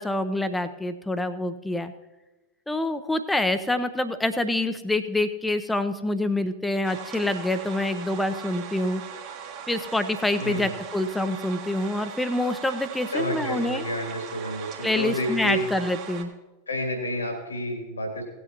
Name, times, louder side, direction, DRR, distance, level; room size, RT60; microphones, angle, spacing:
voice 1, 0.0-1.9 2.7-9.0 9.7-13.8 14.8-16.3, left 1 dB, 5° left, 10 dB, 0.7 m, -26 dB
sound 1, 6.8-16.2, right 8 dB, 40° right, 1.5 m, -39 dB
voice 2, 10.4-10.7 13.1-15.6 16.7-18.2, equal, 80° left, 2 dB, 2.5 m, -30 dB
17.5 x 8.2 x 2.9 m, 1.1 s
figure-of-eight pair, 90°, 0 cm